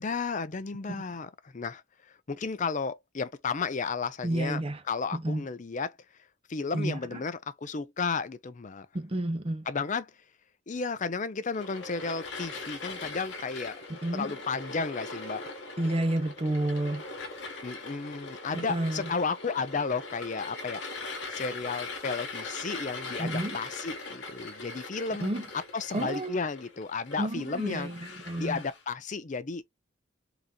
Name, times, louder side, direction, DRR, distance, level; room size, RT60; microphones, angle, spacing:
voice 1, 0.0-1.8 2.3-4.6 4.9-6.0 6.5-8.9 9.7-10.1 10.7-13.8 14.1-15.4 17.6-20.8 21.3-27.9 28.4-29.6, left 4 dB, 35° left, 0.5 m, -33 dB
voice 2, 4.2-4.8 5.1-5.4 6.7-7.2 8.9-9.7 13.9-14.3 15.8-17.0 18.5-19.1 23.2-23.6 25.2-25.5 25.9-26.4 27.2-28.6, right 1 dB, 25° right, 0.6 m, -30 dB
sound 1, 11.5-28.8, left 3 dB, 55° left, 1.2 m, -41 dB
3.8 x 2.9 x 3.6 m
head